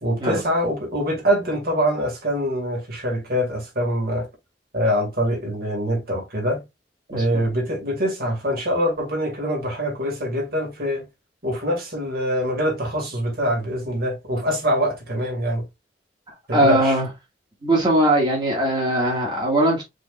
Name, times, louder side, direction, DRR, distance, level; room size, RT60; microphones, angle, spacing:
voice 1, 0.0-4.3 4.7-6.6 7.1-11.1 11.4-15.6 16.5-17.0, equal, 60° right, 2.3 m, -24 dB
voice 2, 7.1-7.4 16.5-17.1 17.6-19.8, right 1 dB, 25° right, 1.8 m, -20 dB
5.0 x 3.9 x 2.4 m
head